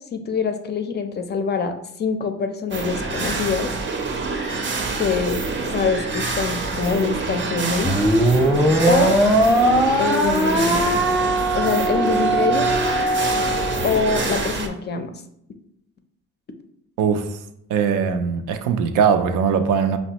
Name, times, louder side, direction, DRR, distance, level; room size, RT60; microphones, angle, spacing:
voice 1, 0.1-3.7 5.0-5.4 5.7-7.9 8.9-9.2 10.0-10.8 11.5-12.7 13.8-15.2, left 5 dB, 35° left, 7 dB, 0.4 m, -24 dB
sound 1, 2.7-14.7, right 3 dB, 40° right, 0.6 m, -27 dB
sound 2, 7.8-14.4, right 1 dB, ahead, 0.7 m, -20 dB
voice 2, 17.0-17.4 17.7-20.0, right 6 dB, 90° right, 8 dB, 0.5 m, -20 dB
5.0 x 2.1 x 2.8 m, 0.76 s
cardioid pair, 90°, 30 cm